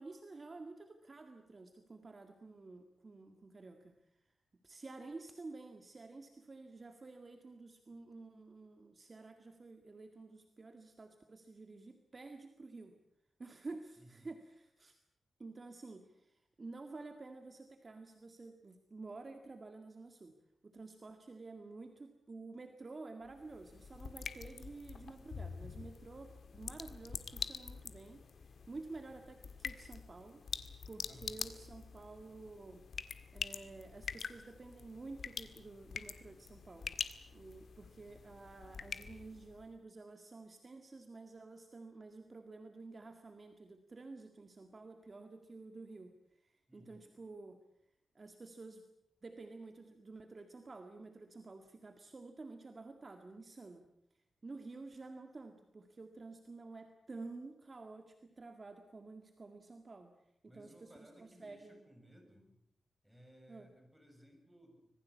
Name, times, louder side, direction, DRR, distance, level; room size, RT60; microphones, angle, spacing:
voice 1, 0.0-4.3 4.6-13.0 13.4-15.0 15.4-20.4 20.6-30.4 30.9-32.9 33.3-37.0 37.3-47.6 48.1-48.8 49.2-53.9 54.1-61.8 63.5-63.7, right 3 dB, 30° right, 6 dB, 1.9 m, -51 dB
voice 2, 14.0-14.3 26.7-27.0 31.0-31.4 46.7-47.0 60.5-62.6 63.0-64.9, equal, 5° right, 2 dB, 7.1 m, -61 dB
sound 1, 23.3-39.7, left 6 dB, 65° left, 1.7 m, -46 dB
26.0 x 20.5 x 8.4 m, 0.79 s
wide cardioid pair, 150°, 0 cm